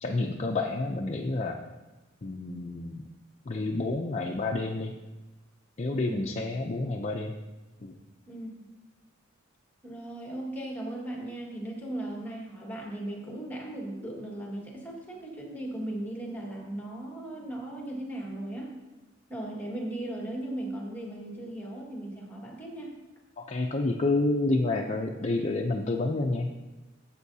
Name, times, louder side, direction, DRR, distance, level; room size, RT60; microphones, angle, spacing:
voice 1, 0.0-1.6 2.2-3.0 3.5-4.9 5.8-7.4 7.8-7.9 23.4-26.5, left 2 dB, 35° left, 0 dB, 0.5 m, -29 dB
voice 2, 5.9-6.3 8.3-8.7 9.8-18.7 19.3-22.9, right 1 dB, 10° left, -2 dB, 1.8 m, -37 dB
12.5 x 7.5 x 2.8 m, 1.1 s
head